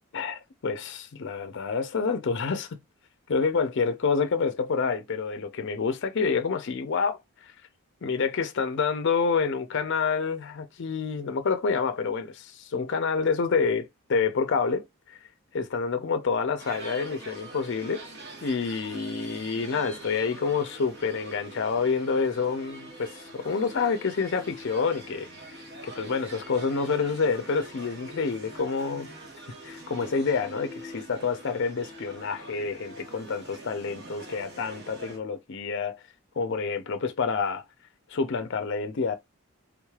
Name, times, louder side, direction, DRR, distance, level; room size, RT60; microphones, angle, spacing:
voice 1, 0.1-2.8 3.3-7.5 8.0-15.2 15.5-18.0 18.4-25.6 25.8-29.1 29.6-36.0 36.4-37.6 38.1-39.2, left 5 dB, 55° left, 0.5 m, -28 dB
sound 1, 16.6-35.2, right 2 dB, 50° right, 1.2 m, -44 dB
3.6 x 3.2 x 2.3 m
head